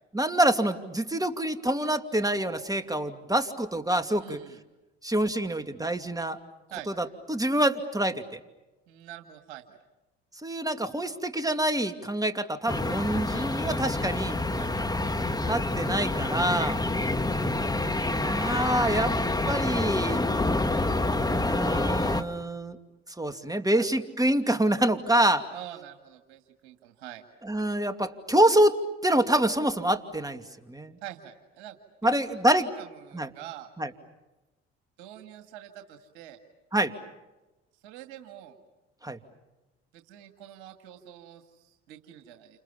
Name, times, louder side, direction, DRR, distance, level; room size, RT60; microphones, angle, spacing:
voice 1, 0.1-4.4 5.0-6.4 7.0-8.4 10.4-14.4 15.5-16.8 18.2-19.2 19.5-20.2 21.1-22.8 23.2-25.5 27.4-31.0 32.0-32.7 33.1-33.3 33.8-33.9 36.7-36.9 39.0-39.2, right 1 dB, 10° right, 8 dB, 2.6 m, -26 dB
voice 2, 4.2-4.6 6.7-6.9 8.9-9.8 14.5-14.9 23.7-23.9 25.5-27.2 31.0-31.8 32.0-32.2 32.5-33.7 35.0-36.4 37.8-38.6 39.9-42.6, right 12 dB, 80° right, 6 dB, 2.0 m, -45 dB
sound 1, 12.7-22.2, left 2 dB, 10° left, 1.8 m, -27 dB
29.5 x 27.5 x 7.1 m, 1.0 s
hypercardioid pair, 55°, 33 cm